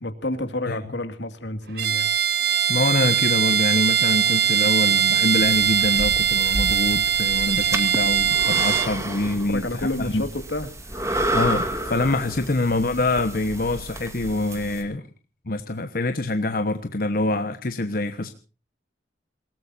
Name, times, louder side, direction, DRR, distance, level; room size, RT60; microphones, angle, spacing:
voice 1, 0.0-2.1 9.5-11.0, left 1 dB, 80° left, 8 dB, 2.2 m, -30 dB
Bowed string instrument, 1.8-8.9, right 8 dB, 60° right, 1.5 m, -21 dB
voice 2, 2.7-9.9 10.1-10.2 11.3-15.0 15.5-18.3, left 2 dB, 55° left, 7 dB, 1.2 m, -25 dB
sound 1, 5.4-14.8, right 1 dB, 15° right, 2.3 m, -31 dB
27.5 x 18.0 x 2.7 m, 0.35 s
head